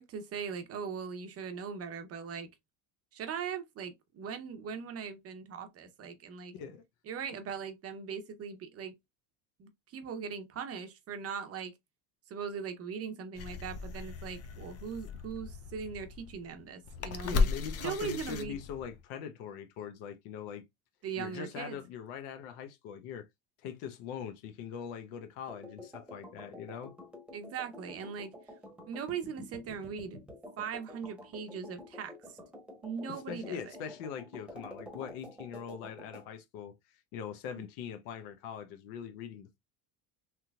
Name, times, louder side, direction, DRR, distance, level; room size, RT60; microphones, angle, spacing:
voice 1, 0.0-2.5 3.1-6.5 7.1-8.9 9.6-11.7 12.3-17.5 17.8-18.6 21.0-21.8 27.3-28.3 28.9-30.2 30.6-32.1 32.8-33.7 37.5-37.7, right 6 dB, 35° right, 0.7 m, -40 dB
voice 2, 6.5-6.8 17.2-20.6 21.2-23.3 23.6-26.9 33.3-36.7 37.1-39.6, left 7 dB, 75° left, 0.9 m, -42 dB
sound 1, 13.4-19.0, left 4 dB, 35° left, 0.6 m, -35 dB
sound 2, 25.5-36.3, left 1 dB, ahead, 0.9 m, -49 dB
3.5 x 2.9 x 2.3 m
cardioid pair, 125°, 41 cm